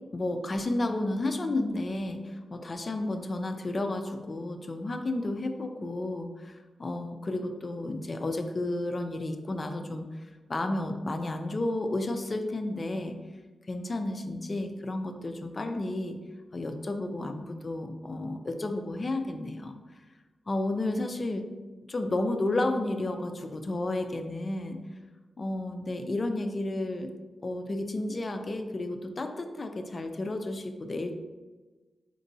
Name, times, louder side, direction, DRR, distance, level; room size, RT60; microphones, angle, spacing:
voice 1, 0.1-13.2 13.7-16.2 16.5-19.7 20.5-21.5 21.9-24.8 25.4-27.1 27.4-31.1, left 2 dB, 35° left, 5 dB, 0.3 m, -32 dB
4.4 x 4.0 x 2.6 m, 1.3 s
wide cardioid pair, 125°, 0 cm